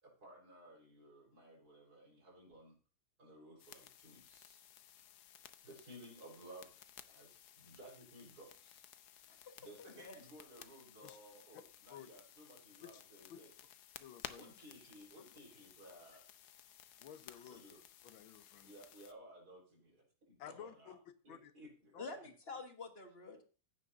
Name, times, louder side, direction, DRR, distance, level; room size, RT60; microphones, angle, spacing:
voice 1, 0.0-2.7 3.2-4.6 5.6-6.8 7.1-8.9 9.6-13.5 14.3-16.2 17.4-17.8 18.6-20.9 21.2-22.0, right 1 dB, 50° right, 0 dB, 4.8 m, -57 dB
sound 1, 3.6-19.1, left 10 dB, 65° left, 1.1 m, -57 dB
voice 2, 9.8-10.3 22.0-23.4, left 3 dB, 35° left, 6 dB, 1.3 m, -48 dB
voice 3, 14.0-14.5 17.0-17.6 18.0-18.7 20.4-21.0 21.3-21.5 21.9-22.1, left 9 dB, 90° left, 11 dB, 1.7 m, -53 dB
15.0 x 9.6 x 2.7 m, 0.36 s
omnidirectional pair, 2.1 m